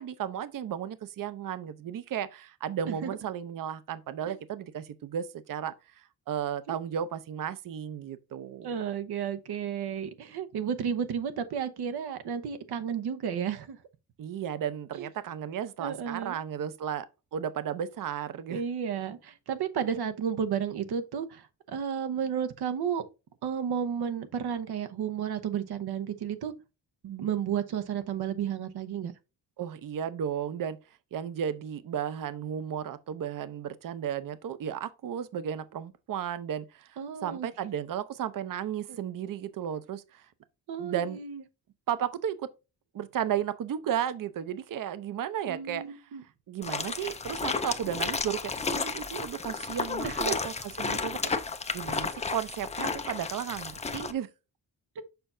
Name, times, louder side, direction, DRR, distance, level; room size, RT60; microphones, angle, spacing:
voice 1, 0.0-8.8 14.2-17.1 17.3-18.6 29.6-30.8 31.1-40.2 40.8-41.2 41.9-42.5 42.9-46.0 46.5-51.2 51.7-54.3, right 9 dB, 60° right, 0.7 m, -34 dB
voice 2, 8.6-13.8 15.0-15.1 15.8-16.4 18.5-23.0 23.4-26.5 27.0-29.1 37.0-37.5 38.9-39.0 40.7-41.4 45.5-46.2 50.0-50.4 55.0-55.1, right 8 dB, 90° right, 1.0 m, -32 dB
sound 1, 46.6-54.1, left 4 dB, 20° left, 0.4 m, -33 dB
6.8 x 5.5 x 2.6 m
wide cardioid pair, 170°, 38 cm